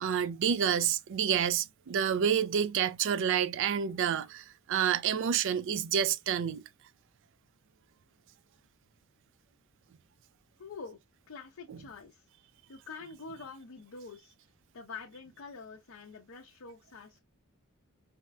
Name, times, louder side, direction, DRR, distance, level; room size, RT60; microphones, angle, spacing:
voice 1, 0.0-6.6 11.7-11.8, right 8 dB, 60° right, 0.3 m, -29 dB
voice 2, 10.6-11.0 11.3-12.3 12.7-14.3 14.7-17.2, left 4 dB, 60° left, 0.6 m, -46 dB
4.3 x 2.1 x 2.2 m
head